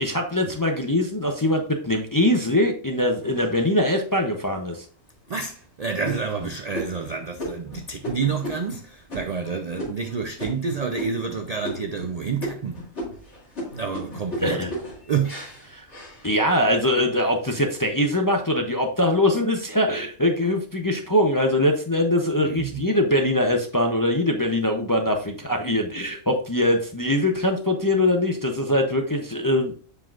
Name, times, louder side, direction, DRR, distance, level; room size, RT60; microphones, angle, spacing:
voice 1, 0.0-4.8 14.4-14.7 15.7-15.9 16.2-29.7, left 1 dB, 25° left, 0.5 m, -22 dB
sound 1, 3.2-4.1 4.7-4.8 5.2-5.6 6.0-11.4 11.6-12.1 12.4-16.7 17.2-17.7, equal, 60° left, 2.8 m, -35 dB
voice 2, 5.3-12.9 13.7-14.6 15.1-15.4 22.4-22.8, right 5 dB, 60° right, 0.4 m, -29 dB
7.5 x 5.5 x 2.4 m
omnidirectional pair, 1.3 m